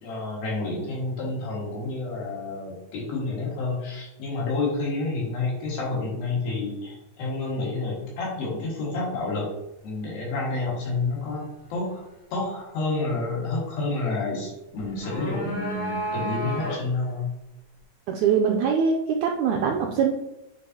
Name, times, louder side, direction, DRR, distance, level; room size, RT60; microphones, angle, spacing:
voice 1, 0.0-9.5 9.8-12.0 12.3-17.3, left 3 dB, 90° left, -4 dB, 3.6 m, -29 dB
sound 1, 14.8-17.1, right 1 dB, 55° left, 3.6 m, -32 dB
voice 2, 18.1-19.0 19.2-20.1, right 6 dB, 90° right, 2 dB, 1.7 m, -22 dB
8.4 x 4.1 x 2.8 m, 0.94 s
omnidirectional pair, 4.0 m